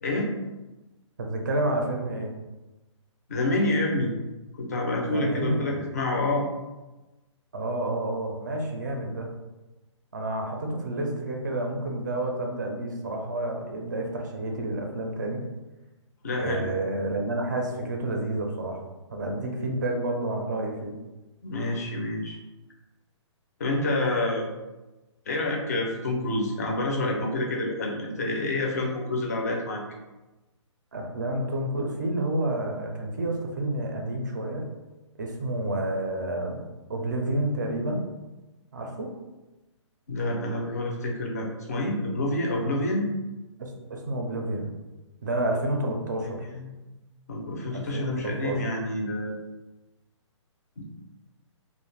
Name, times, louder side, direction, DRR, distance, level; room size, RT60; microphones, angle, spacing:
voice 1, 0.0-0.3 3.3-4.1 4.6-6.5 16.2-16.6 21.4-22.4 23.6-24.5 25.3-29.8 40.1-43.1 46.2-46.7 47.3-49.3 50.8-50.9, left 2 dB, 30° left, 0 dB, 0.4 m, -28 dB
voice 2, 1.2-2.3 5.0-5.9 7.5-9.3 10.1-15.4 16.4-18.8 19.1-20.9 30.9-34.7 35.2-36.6 36.9-38.0 38.7-39.1 43.6-44.7 45.2-46.4 47.7-48.6, right 1 dB, 35° right, 1 dB, 0.4 m, -29 dB
2.4 x 2.1 x 3.2 m, 1.1 s
hypercardioid pair, 175°, 16 cm